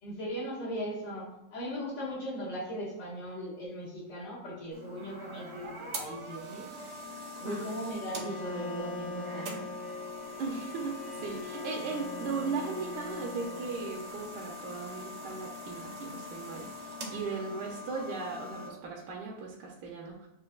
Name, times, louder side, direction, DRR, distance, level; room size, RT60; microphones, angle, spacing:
voice 1, 0.0-6.6 7.4-9.5, equal, 70° left, -6 dB, 2.1 m, -38 dB
sound 1, 4.7-18.7, left 1 dB, 55° right, 0.8 m, -43 dB
Bowed string instrument, 8.1-14.4, left 2 dB, 85° left, 2.3 m, -42 dB
voice 2, 10.4-16.7 17.1-20.3, right 4 dB, 75° right, -1 dB, 1.2 m, -37 dB
7.5 x 2.5 x 2.3 m, 0.90 s
omnidirectional pair, 2.0 m